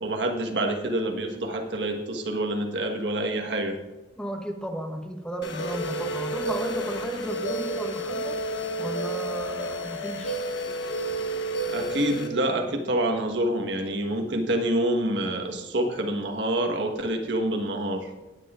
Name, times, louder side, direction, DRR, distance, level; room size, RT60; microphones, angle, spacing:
voice 1, 0.0-3.8 11.7-18.1, right 1 dB, 70° right, 3 dB, 1.5 m, -27 dB
voice 2, 4.2-8.4 8.8-10.4, right 1 dB, 5° left, 4 dB, 0.9 m, -34 dB
sound 1, 5.4-12.3, right 1 dB, 80° left, 1.2 m, -31 dB
18.0 x 9.6 x 2.5 m, 1.2 s
head